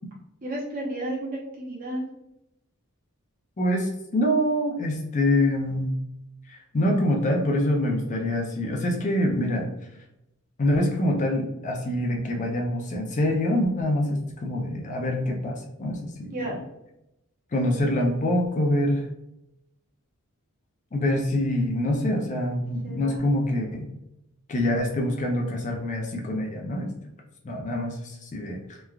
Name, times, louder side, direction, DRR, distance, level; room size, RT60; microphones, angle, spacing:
voice 1, 0.4-2.1 16.3-16.6 22.8-23.3, right 1 dB, 40° right, -3 dB, 0.8 m, -32 dB
voice 2, 3.6-6.0 6.5-9.7 10.6-16.3 17.5-19.1 20.9-23.9 24.5-26.9 27.4-28.8, left 1 dB, 35° left, 0 dB, 0.4 m, -25 dB
3.1 x 2.3 x 2.3 m, 0.86 s
head